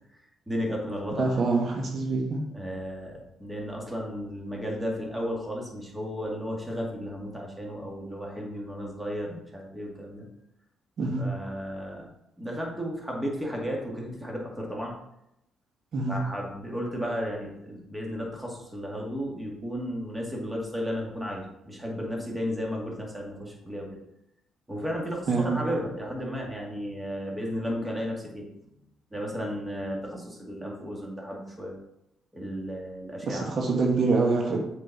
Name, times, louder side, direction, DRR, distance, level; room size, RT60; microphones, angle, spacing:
voice 1, 0.5-1.4 2.5-10.3 11.2-12.1 12.4-14.9 16.1-24.0 24.7-28.8 29.1-31.7 32.3-33.5, equal, 10° right, -1 dB, 2.1 m, -34 dB
voice 2, 1.2-2.4 11.0-11.3 15.9-16.2 25.3-25.6 33.2-34.6, right 3 dB, 60° right, 1 dB, 1.4 m, -25 dB
7.4 x 5.3 x 4.2 m, 0.84 s
cardioid pair, 90°, 0 cm